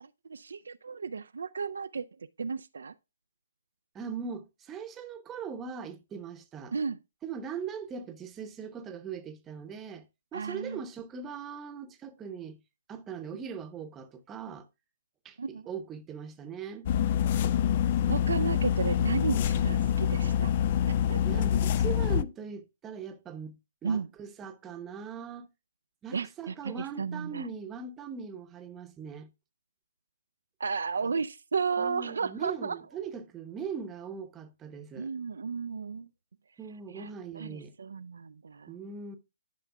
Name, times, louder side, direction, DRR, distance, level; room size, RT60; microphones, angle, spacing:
voice 1, 0.0-2.1 2.4-2.9 6.7-7.0 10.3-10.8 15.4-15.6 18.1-20.5 20.9-21.2 23.8-24.1 26.1-27.5 30.6-32.8 34.9-36.1 36.9-37.1 37.3-38.7, right 5 dB, 65° right, 0.3 m, -33 dB
voice 2, 3.9-6.7 7.2-10.1 10.3-12.6 12.9-14.7 15.2-16.9 18.0-18.4 19.3-19.4 21.2-25.5 26.0-29.3 31.8-35.1 36.6-37.7 38.7-39.2, right 6 dB, 15° right, 0.8 m, -40 dB
sound 1, 16.9-22.2, left 10 dB, 40° left, 0.3 m, -26 dB
11.0 x 5.5 x 2.3 m
figure-of-eight pair, 135°, 0 cm